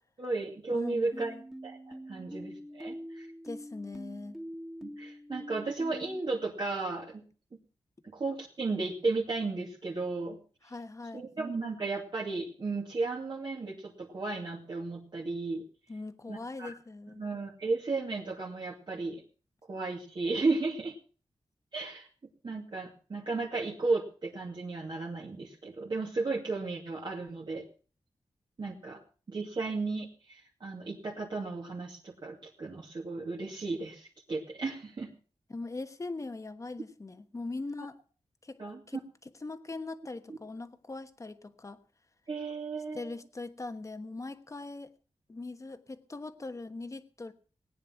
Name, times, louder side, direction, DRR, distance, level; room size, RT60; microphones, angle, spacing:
voice 1, 0.2-1.3 1.6-3.3 4.8-7.2 8.1-10.4 11.1-15.6 16.3-16.7 17.2-19.2 19.7-21.0 21.7-22.1 22.4-27.7 28.6-29.0 29.3-35.1 38.6-38.8 42.3-43.1, right 3 dB, 50° right, -2 dB, 2.5 m, -34 dB
voice 2, 0.7-1.4 3.4-4.4 10.6-11.2 15.9-17.2 35.5-38.0 38.4-38.6 38.9-39.0 39.4-41.8 42.9-44.9 45.3-47.3, left 3 dB, 30° left, 10 dB, 1.2 m, -41 dB
sound 1, 1.1-6.2, equal, 5° right, 2.0 m, -44 dB
19.0 x 9.7 x 5.8 m, 0.39 s
wide cardioid pair, 110°, 10 cm